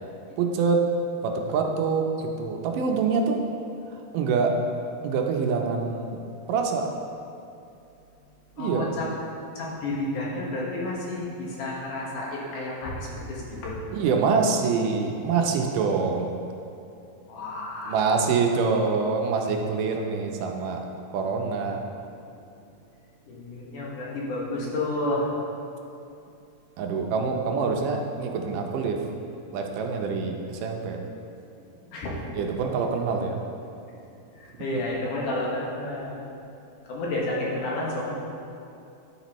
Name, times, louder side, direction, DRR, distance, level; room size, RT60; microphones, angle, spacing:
voice 1, 0.4-0.8 1.2-3.4 4.1-4.5 5.0-6.2 6.5-6.9 8.6-8.9 13.9-16.4 17.8-20.8 21.1-21.9 26.8-29.0 29.5-31.0 32.3-33.4 34.7-34.8, right 5 dB, 80° right, 2 dB, 2.3 m, -25 dB
voice 2, 8.6-9.0 9.6-13.8 17.3-17.9 23.3-25.3 31.9-32.1 34.4-36.1 36.9-38.1, left 2 dB, 70° left, -5 dB, 2.9 m, -30 dB
10.0 x 9.5 x 3.0 m, 2.6 s
omnidirectional pair, 3.9 m